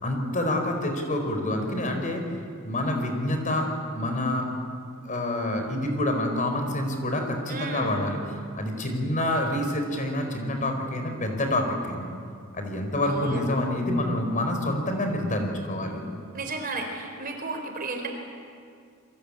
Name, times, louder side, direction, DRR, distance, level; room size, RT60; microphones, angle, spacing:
voice 1, 0.0-2.3 2.6-4.5 5.0-12.1 12.5-16.0, left 1 dB, 40° left, 4 dB, 4.6 m, -27 dB
voice 2, 7.5-7.9 13.0-13.4 16.3-18.1, right 3 dB, 45° right, 4 dB, 4.5 m, -33 dB
29.0 x 23.5 x 8.7 m, 2.3 s
head